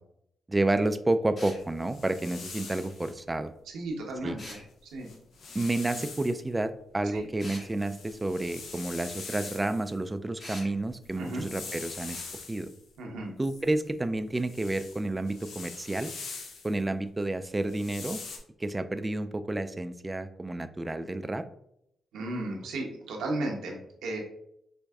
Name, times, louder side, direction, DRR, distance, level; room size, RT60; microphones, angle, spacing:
voice 1, 0.5-3.5 4.2-4.4 5.5-12.2 12.5-12.7 13.4-16.1 16.6-18.2 18.6-21.5, right 2 dB, 20° right, 11 dB, 0.3 m, -30 dB
sound 1, 1.4-1.6 4.4-4.7 7.4-7.7 10.4-10.7, left 1 dB, 45° left, 1.2 m, -43 dB
sound 2, 1.6-3.1 4.5-4.6 4.9-6.4 7.0-10.0 10.9-12.8 13.4-16.8 17.6-18.4, left 4 dB, 75° left, 0.6 m, -43 dB
voice 2, 3.7-4.6 4.9-5.1 5.9-6.0 7.1-7.2 11.2-11.4 13.0-13.3 22.1-24.2, right 2 dB, 85° right, 1 dB, 0.8 m, -34 dB
4.5 x 2.6 x 2.3 m, 0.76 s
supercardioid pair, 55°, 0 cm